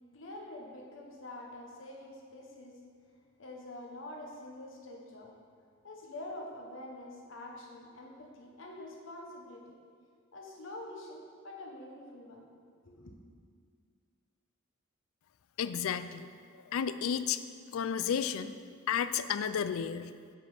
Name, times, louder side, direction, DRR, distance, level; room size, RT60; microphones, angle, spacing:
voice 1, 0.1-2.8 3.4-5.4 5.8-9.8 10.3-12.5 12.8-13.2, left 1 dB, 70° left, 0 dB, 0.9 m, -46 dB
voice 2, 15.6-16.3 16.7-17.4 17.7-18.5 18.9-20.1, left 8 dB, 85° left, 12 dB, 0.4 m, -32 dB
7.5 x 5.2 x 6.0 m, 2.1 s
head